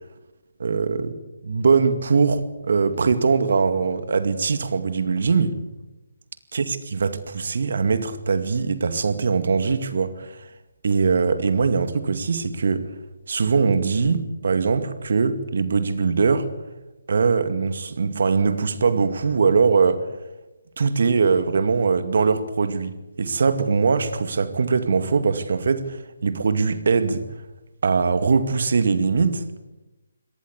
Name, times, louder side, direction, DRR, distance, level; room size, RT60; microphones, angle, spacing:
voice 1, 0.6-1.2 1.4-5.6 6.5-10.4 10.8-12.9 13.3-16.5 17.1-20.1 20.8-27.2 27.8-29.4, right 5 dB, 65° right, 2.2 m, -21 dB
24.5 x 18.5 x 8.3 m
figure-of-eight pair, 150°, 0 cm